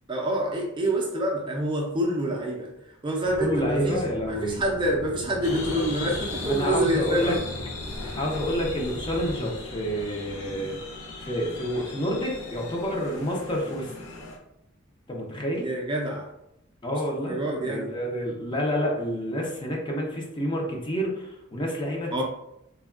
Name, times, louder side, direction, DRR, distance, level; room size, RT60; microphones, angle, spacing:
voice 1, 0.1-2.7 3.0-4.0 4.3-7.4 8.0-8.2 15.6-16.3 17.3-17.9 22.1-22.2, right 1 dB, 25° right, -1 dB, 0.4 m, -27 dB
sound 1, 3.2-9.4, left 1 dB, 55° left, 1.2 m, -40 dB
voice 2, 3.4-4.6 6.5-7.3 8.2-10.8 11.2-13.9 15.1-15.7 16.8-17.4 17.6-22.2, equal, 25° left, -1 dB, 0.6 m, -28 dB
sound 2, 5.4-14.4, left 2 dB, 85° left, 0.6 m, -38 dB
3.4 x 2.2 x 2.3 m, 0.82 s
head